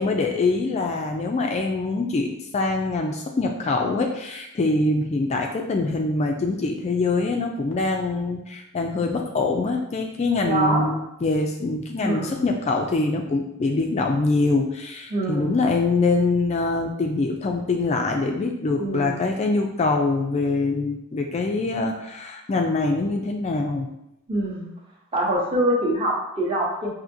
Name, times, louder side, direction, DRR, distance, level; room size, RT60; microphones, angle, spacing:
voice 1, 0.0-23.9, left 3 dB, 30° left, 2 dB, 0.3 m, -24 dB
voice 2, 10.4-11.0 12.0-12.4 15.1-15.6 18.8-19.2 24.3-24.7 25.1-26.9, right 1 dB, 25° right, -2 dB, 0.9 m, -24 dB
5.7 x 2.7 x 2.6 m, 0.83 s
head